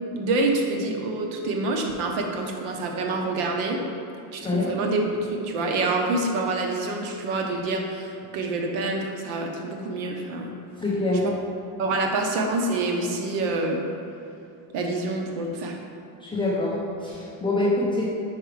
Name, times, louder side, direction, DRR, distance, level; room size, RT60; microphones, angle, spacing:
voice 1, 0.1-3.8 4.3-10.5 11.2-11.3 11.8-13.8 14.7-15.8, right 2 dB, 65° right, 2 dB, 0.9 m, -27 dB
voice 2, 10.8-11.2 16.2-18.1, left 2 dB, 10° left, -7 dB, 0.4 m, -25 dB
4.9 x 4.7 x 4.7 m, 2.6 s
cardioid pair, 165°, 48 cm